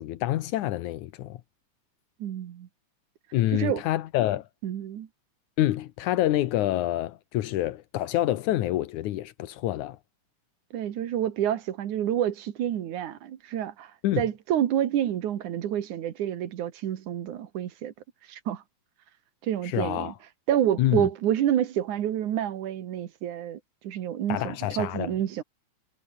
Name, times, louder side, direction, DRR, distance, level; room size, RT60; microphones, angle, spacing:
voice 1, 0.0-1.4 3.3-4.5 5.6-10.0 14.0-14.2 19.6-20.1 20.8-21.1 24.3-25.1, left 14 dB, 85° left, 2.5 m, -27 dB
voice 2, 2.2-2.7 3.5-3.8 4.6-5.1 10.7-13.9 14.2-17.9 18.3-18.6 19.4-20.1 20.5-25.4, right 11 dB, 85° right, 3.1 m, -28 dB
omnidirectional pair, 3.4 m